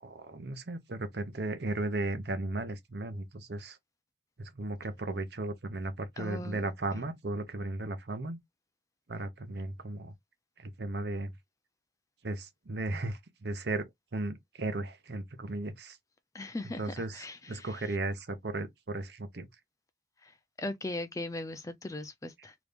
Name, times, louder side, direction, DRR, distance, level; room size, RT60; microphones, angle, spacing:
voice 1, 0.0-3.8 4.4-8.4 9.1-10.1 10.6-11.3 12.2-16.0 16.8-19.5, right 2 dB, 60° right, 0.8 m, -36 dB
voice 2, 6.2-6.7 16.3-18.0 20.2-22.5, left 2 dB, 15° left, 0.4 m, -39 dB
3.0 x 2.5 x 3.4 m
head